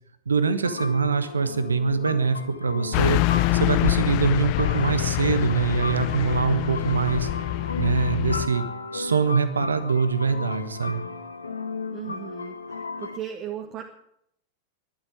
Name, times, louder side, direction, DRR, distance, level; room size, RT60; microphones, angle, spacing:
voice 1, 0.3-3.2 3.5-7.3 7.8-8.6 8.9-11.0, right 5 dB, 75° right, 12 dB, 1.4 m, -24 dB
sound 1, 0.6-13.2, left 3 dB, 75° left, 1.2 m, -35 dB
Car passing by / Truck, 2.9-8.5, left 20 dB, 45° left, 0.5 m, -25 dB
voice 2, 11.9-12.6 13.0-13.8, right 10 dB, 35° right, 2 dB, 1.8 m, -36 dB
12.0 x 12.0 x 8.9 m, 0.72 s
figure-of-eight pair, 90°, 0 cm